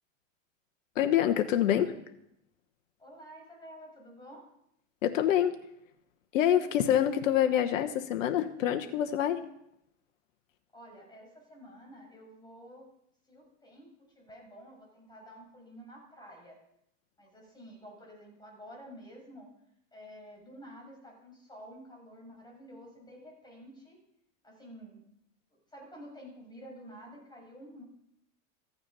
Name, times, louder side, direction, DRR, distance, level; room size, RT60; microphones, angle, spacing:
voice 1, 1.0-1.9 5.0-5.6 6.3-9.4, left 10 dB, 85° left, 7 dB, 1.1 m, -26 dB
voice 2, 3.0-4.5 10.7-12.8 13.3-13.9 14.2-16.6 17.2-19.5 19.9-24.0 24.4-25.0 25.7-27.8, equal, 10° left, -1 dB, 7.1 m, -50 dB
14.5 x 9.4 x 5.4 m, 0.77 s
supercardioid pair, 110°, 38 cm